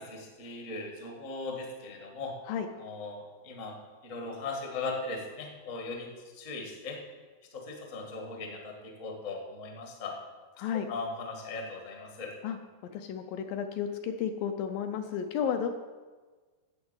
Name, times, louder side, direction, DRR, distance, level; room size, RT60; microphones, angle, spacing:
voice 1, 0.0-2.3 2.8-3.8 4.0-6.1 6.4-7.0 7.5-10.2 10.9-12.3, left 3 dB, 55° left, 1 dB, 0.8 m, -38 dB
voice 2, 10.6-10.9 12.4-12.6 12.8-15.7, left 8 dB, 80° left, 6 dB, 2.1 m, -32 dB
9.4 x 7.1 x 8.0 m, 1.4 s
omnidirectional pair, 4.4 m